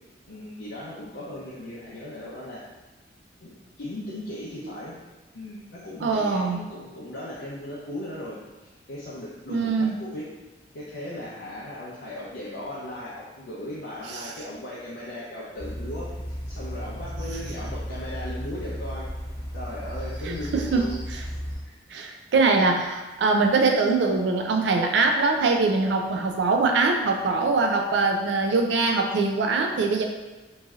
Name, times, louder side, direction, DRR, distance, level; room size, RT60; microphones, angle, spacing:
voice 1, 0.3-2.7 3.4-4.9 5.3-10.3 10.7-19.1 19.5-20.9, left 1 dB, 70° left, -7 dB, 0.5 m, -37 dB
voice 2, 6.0-6.6 9.5-10.0 20.3-20.9 21.9-30.0, right 3 dB, 70° right, 3 dB, 0.3 m, -22 dB
sound 1, 15.6-21.6, equal, 30° right, 1.2 m, -34 dB
3.1 x 2.6 x 2.3 m, 1.1 s
head